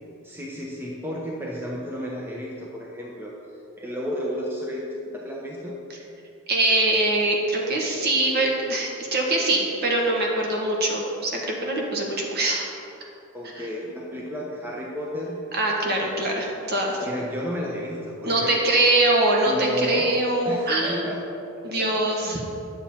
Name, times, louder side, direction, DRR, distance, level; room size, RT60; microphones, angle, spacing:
voice 1, 0.2-3.3 3.8-5.7 13.3-15.4 17.0-18.6 19.4-20.1 20.4-21.2 21.8-22.4, equal, 10° right, -3 dB, 0.8 m, -32 dB
voice 2, 6.5-12.7 13.5-13.7 15.5-17.0 18.2-21.1 21.6-22.4, right 2 dB, 45° right, -1 dB, 1.4 m, -23 dB
9.3 x 7.1 x 4.3 m, 2.7 s
head